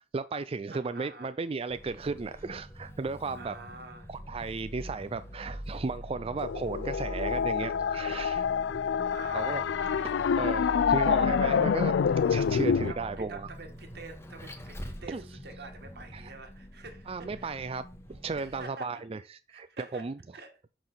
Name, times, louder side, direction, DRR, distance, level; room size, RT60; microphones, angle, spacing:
voice 1, 0.0-3.5 4.1-8.5 9.3-9.6 10.4-11.9 12.2-13.5 15.1-15.2 16.1-16.3 17.1-17.8 18.1-19.2 19.5-19.7 19.9-20.2, right 4 dB, 35° right, 0.4 m, -35 dB
voice 2, 0.7-1.4 3.3-4.1 9.1-10.3 12.4-12.6 12.9-17.5 18.4-19.0 19.5-20.6, right 3 dB, 60° right, 1.8 m, -47 dB
Vehicle, 1.7-18.6, equal, 15° left, 1.1 m, -43 dB
sound 1, 6.4-12.9, left 7 dB, 75° left, 0.3 m, -27 dB
6.8 x 6.1 x 5.7 m
head